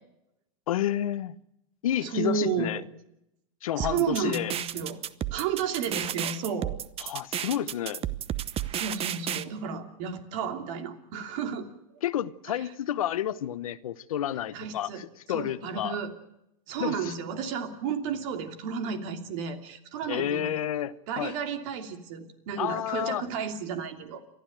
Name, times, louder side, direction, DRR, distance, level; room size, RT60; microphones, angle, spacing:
voice 1, 0.7-1.4 1.8-2.8 3.6-4.5 7.0-8.1 12.0-16.0 16.8-17.1 20.1-21.3 22.6-23.3, left 11 dB, 85° left, 0.9 m, -30 dB
voice 2, 2.0-2.9 3.8-5.0 5.3-6.8 8.7-11.7 12.5-12.6 14.5-15.0 15.3-16.1 16.7-20.6 21.1-24.2, right 7 dB, 65° right, 2.9 m, -32 dB
sound 1, 3.8-9.4, right 11 dB, 35° right, 1.0 m, -32 dB
29.5 x 12.5 x 9.0 m
hypercardioid pair, 105°, 18 cm